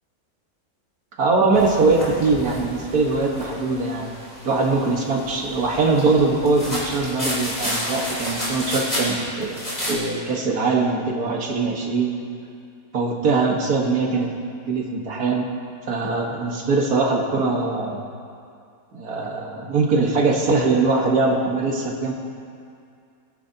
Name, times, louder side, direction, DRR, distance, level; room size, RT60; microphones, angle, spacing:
voice 1, 1.2-4.1 4.4-12.1 12.9-14.3 14.7-15.5 15.9-18.0 18.9-22.1, right 3 dB, 75° right, -1 dB, 2.0 m, -22 dB
sound 1, 1.5-9.9, equal, 25° left, 3.6 m, -31 dB
22.5 x 9.6 x 2.9 m, 2.4 s
omnidirectional pair, 1.6 m